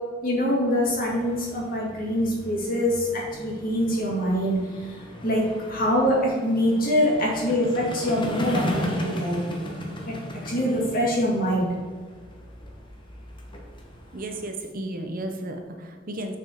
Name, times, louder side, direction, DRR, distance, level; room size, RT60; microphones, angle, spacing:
voice 1, 0.2-4.6 5.2-5.4 5.7-9.4 10.1-10.2 10.5-11.7, equal, 45° left, -3 dB, 2.4 m, -24 dB
sound 1, 0.7-14.5, left 1 dB, 25° left, 1.1 m, -36 dB
voice 2, 14.1-16.4, right 1 dB, 45° right, 5 dB, 0.8 m, -33 dB
7.0 x 6.2 x 4.5 m, 1.5 s
head